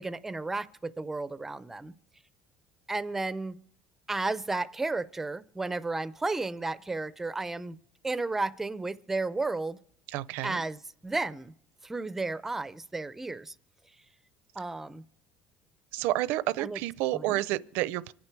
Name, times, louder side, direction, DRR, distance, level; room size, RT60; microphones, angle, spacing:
voice 1, 0.0-1.9 2.9-3.6 4.1-7.8 8.0-9.8 10.4-11.5 11.8-13.5 14.6-15.0 16.6-16.8 17.1-17.4, right 3 dB, 10° right, 0.5 m, -33 dB
voice 2, 10.1-10.7 15.9-18.1, right 16 dB, 70° right, 0.6 m, -30 dB
25.5 x 8.9 x 4.6 m
cardioid pair, 160°, 3 cm